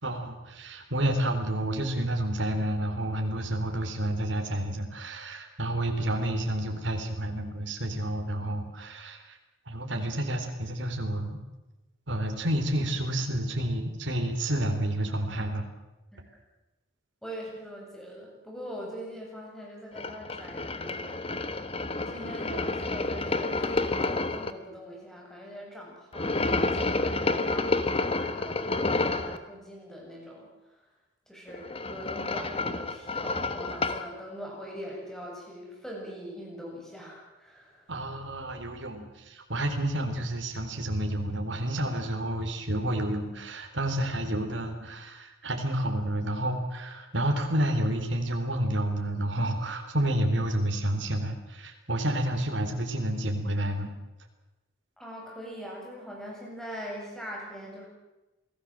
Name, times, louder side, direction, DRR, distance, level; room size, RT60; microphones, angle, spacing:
voice 1, 0.0-9.4 9.7-11.4 12.1-15.6 37.9-53.9, right 1 dB, 65° right, 4 dB, 4.0 m, -30 dB
voice 2, 17.2-30.5 31.3-37.9 55.0-57.9, equal, ahead, -2 dB, 8.0 m, -42 dB
sound 1, 20.0-24.5 26.1-29.4 31.5-34.1, left 2 dB, 30° left, 1.3 m, -29 dB
28.0 x 18.5 x 7.6 m, 1.0 s
head